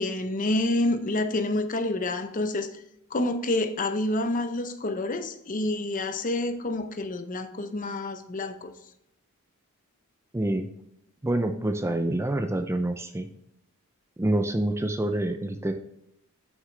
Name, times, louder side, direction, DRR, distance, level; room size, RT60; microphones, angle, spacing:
voice 1, 0.0-2.7 3.1-8.7, left 2 dB, 35° left, 9 dB, 0.7 m, -28 dB
voice 2, 10.3-10.7 11.2-13.3 14.2-15.7, right 1 dB, 10° right, 7 dB, 0.4 m, -27 dB
7.4 x 6.1 x 3.3 m, 0.81 s
head